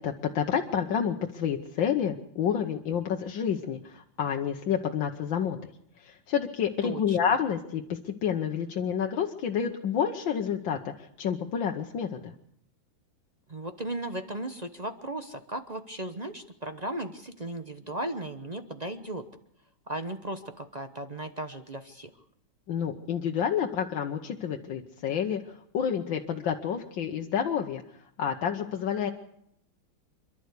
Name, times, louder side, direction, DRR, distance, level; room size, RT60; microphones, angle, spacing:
voice 1, 0.0-5.6 6.0-12.3 22.7-27.8 28.2-29.1, left 8 dB, 70° left, 3 dB, 1.8 m, -29 dB
voice 2, 6.8-7.2 13.5-19.2 19.9-22.1, right 1 dB, 30° right, 8 dB, 0.7 m, -36 dB
27.5 x 12.0 x 8.3 m, 0.72 s
omnidirectional pair, 2.2 m